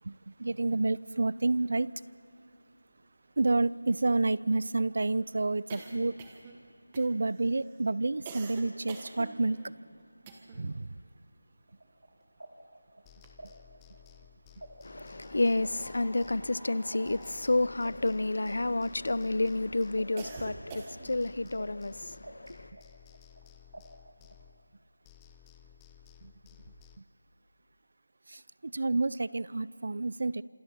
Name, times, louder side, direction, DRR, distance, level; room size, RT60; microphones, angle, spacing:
voice 1, 0.0-1.9 3.4-6.2 6.9-9.6 10.5-11.0 26.2-26.3 27.0-27.1 28.3-30.4, right 2 dB, 50° right, 0.5 m, -29 dB
sound 1, 2.6-2.7 2.9-3.0 3.3-10.8 11.1-12.6 13.0-13.9 14.7-19.2 19.6-21.3, right 3 dB, 15° right, 1.2 m, -48 dB
sound 2, 11.7-14.7 14.9-19.6 20.0-22.5 22.8-24.4, right 1 dB, 80° right, 5.1 m, -50 dB
sound 3, 13.0-16.8 17.0-20.8 21.0-24.8 25.0-27.0, left 9 dB, 10° left, 0.5 m, -57 dB
voice 2, 14.8-22.7, left 2 dB, 60° left, 0.6 m, -30 dB
27.0 x 27.0 x 4.4 m
figure-of-eight pair, 170°, 0 cm